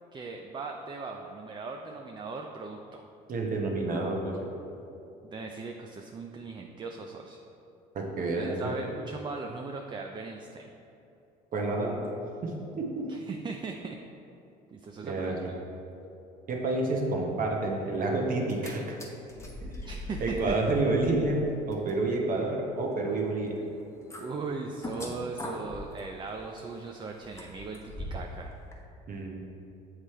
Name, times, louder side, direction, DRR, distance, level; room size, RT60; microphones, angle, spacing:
voice 1, 0.1-3.1 5.2-7.4 8.3-10.7 13.1-14.0 14.7-15.4 19.4-19.5 19.9-20.6 24.2-28.5, right 4 dB, 25° right, 3 dB, 0.4 m, -39 dB
voice 2, 3.3-4.5 7.9-8.7 11.5-12.0 12.4-13.1 15.0-15.5 16.5-19.0 19.6-19.9 20.2-21.4 21.7-23.6 29.1-29.4, right 2 dB, 50° right, -1 dB, 1.0 m, -29 dB
sound 1, 18.3-18.7 19.0-28.4 28.7-28.8, left 1 dB, 15° left, 1.0 m, -43 dB
7.3 x 3.3 x 4.2 m, 2.8 s
supercardioid pair, 80°, 18 cm